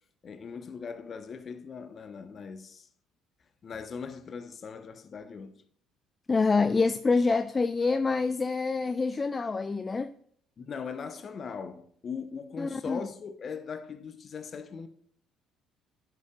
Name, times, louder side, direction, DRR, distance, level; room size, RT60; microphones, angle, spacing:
voice 1, 0.2-2.9 3.6-5.6 10.6-14.9, left 6 dB, 45° left, 1.0 m, -40 dB
voice 2, 6.3-10.1 12.6-13.1, left 4 dB, 30° left, 0.4 m, -26 dB
10.5 x 6.9 x 2.4 m
hypercardioid pair, 55°, 0 cm